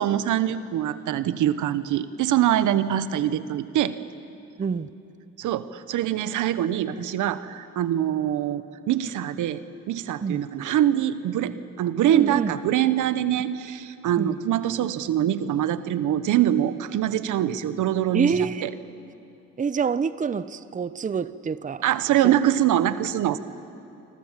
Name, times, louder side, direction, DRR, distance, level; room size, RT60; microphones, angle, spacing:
voice 1, 0.0-3.9 5.4-9.6 9.9-18.3 18.6-18.7 21.8-23.4, right 11 dB, 80° right, 13 dB, 1.0 m, -24 dB
voice 2, 4.6-4.9 10.2-10.4 12.1-12.5 14.2-14.4 18.1-18.7 19.6-21.8 22.2-22.3, right 6 dB, 25° right, 15 dB, 0.7 m, -26 dB
26.5 x 26.0 x 7.4 m, 2.7 s
cardioid pair, 90°, 30 cm